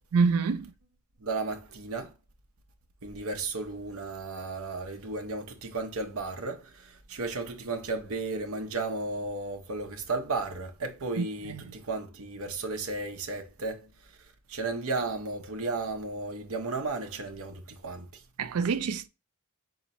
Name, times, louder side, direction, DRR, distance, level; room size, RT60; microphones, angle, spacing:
voice 1, 0.1-0.7 11.2-11.7 18.4-19.1, right 5 dB, 90° right, 0.4 m, -27 dB
voice 2, 1.2-2.1 3.0-13.9 14.5-18.2, right 3 dB, 70° right, 0.8 m, -34 dB
4.0 x 2.9 x 4.1 m
head